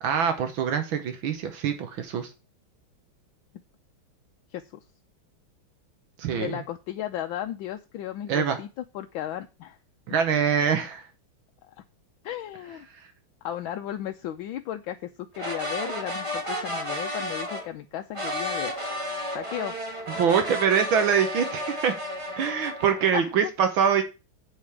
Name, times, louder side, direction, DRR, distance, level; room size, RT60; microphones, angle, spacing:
voice 1, 0.0-2.3 6.2-6.6 8.3-8.6 10.1-11.0 20.2-21.9 22.4-24.0, right 7 dB, 80° right, 7 dB, 1.9 m, -24 dB
voice 2, 6.3-8.7 8.9-9.8 12.2-12.9 13.4-18.8 19.3-19.8 23.1-23.5, left 12 dB, 80° left, 6 dB, 1.5 m, -34 dB
sound 1, 15.3-17.7 18.1-23.1, equal, 15° right, 1.6 m, -32 dB
8.2 x 4.9 x 7.1 m, 0.29 s
omnidirectional pair, 2.2 m